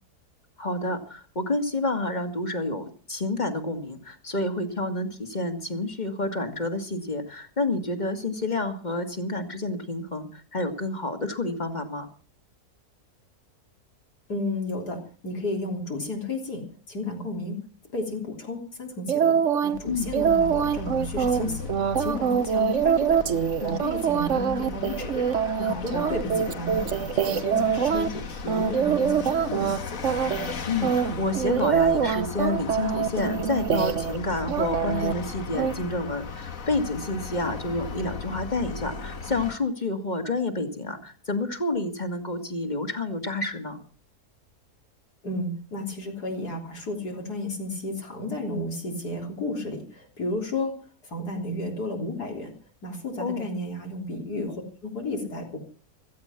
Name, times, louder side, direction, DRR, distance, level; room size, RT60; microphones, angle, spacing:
voice 1, 0.6-12.1 19.9-20.1 25.6-26.1 30.6-43.8 53.2-53.5, left 2 dB, 30° left, 7 dB, 2.0 m, -29 dB
voice 2, 14.3-17.6 17.9-30.0 45.2-50.7 51.0-52.5 52.8-55.6, left 2 dB, 80° left, 2 dB, 4.1 m, -33 dB
sound 1, 19.1-19.8 20.1-28.1 28.5-29.8 30.0-30.5 30.8-34.2 34.5-35.1 35.5-35.7, right 7 dB, 55° right, 1.3 m, -24 dB
Vehicle, 19.7-39.5, left 5 dB, 60° left, 1.9 m, -37 dB
16.5 x 14.5 x 5.9 m, 0.40 s
omnidirectional pair, 1.7 m